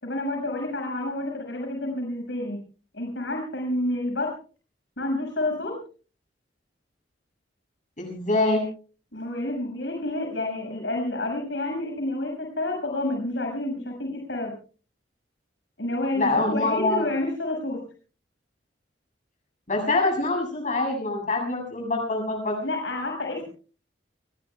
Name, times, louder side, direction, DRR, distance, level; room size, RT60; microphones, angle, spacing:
voice 1, 0.0-2.6 2.9-4.3 5.0-5.8 9.1-14.5 15.8-17.8 22.6-23.4, left 1 dB, 90° left, 2 dB, 6.0 m, -29 dB
voice 2, 8.0-8.6 16.1-17.1 19.7-22.6, left 2 dB, 45° left, 1 dB, 7.3 m, -25 dB
29.5 x 19.0 x 2.3 m, 0.37 s
head